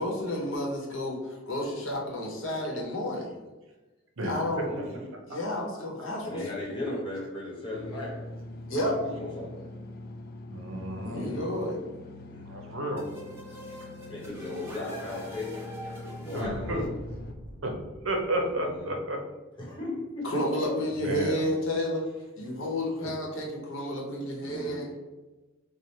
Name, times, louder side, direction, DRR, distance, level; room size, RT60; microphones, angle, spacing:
voice 1, 0.0-3.3 4.2-4.8 5.3-6.4 8.7-9.0 11.0-11.8 20.2-22.1 22.4-24.9, left 1 dB, 75° left, -1 dB, 0.9 m, -31 dB
voice 2, 4.6-5.1 6.2-8.3 8.7-9.7 11.0-11.6 12.3-12.5 13.8-15.6 16.1-17.0 18.4-18.9 19.6-20.8 23.0-23.2 24.4-24.8, left 2 dB, 25° left, -5 dB, 1.1 m, -37 dB
sound 1, 7.7-17.3, left 1 dB, 50° left, 0.4 m, -43 dB
voice 3, 10.5-11.3 12.5-13.0 16.3-16.8 17.6-17.7 18.0-19.2 21.0-21.4, right 1 dB, 70° right, 2 dB, 0.7 m, -31 dB
sound 2, 13.0-18.6, left 1 dB, 10° right, 1.1 m, -43 dB
3.2 x 2.1 x 4.1 m, 1.2 s
head